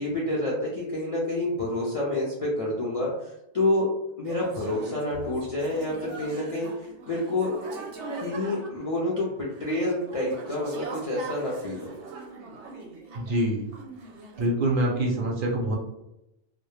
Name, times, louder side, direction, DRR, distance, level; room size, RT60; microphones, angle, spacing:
voice 1, 0.0-3.9 4.2-6.7 7.1-7.5 8.2-9.3 9.6-11.9, left 1 dB, 55° left, -5 dB, 0.4 m, -28 dB
sound 1, 4.3-13.4 13.7-14.5, right 4 dB, 85° right, 0.9 m, -41 dB
voice 2, 13.1-13.7 14.4-15.8, right 1 dB, 60° right, -1 dB, 0.6 m, -25 dB
2.1 x 2.1 x 3.0 m, 0.88 s
omnidirectional pair, 1.2 m